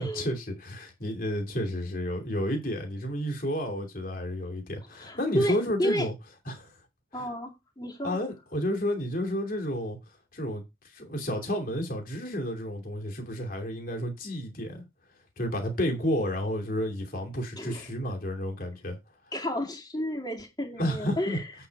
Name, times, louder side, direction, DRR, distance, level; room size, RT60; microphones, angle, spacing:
voice 1, 0.0-6.1 6.5-6.7 7.1-7.3 8.0-10.0 10.3-10.6 10.9-14.8 15.4-19.0 20.8-21.4, equal, 45° left, 2.7 m, -31 dB
voice 2, 4.9-6.1 7.1-8.2 17.6-17.8 19.3-21.5, equal, 20° left, 2.4 m, -31 dB
8.4 x 5.8 x 4.6 m
head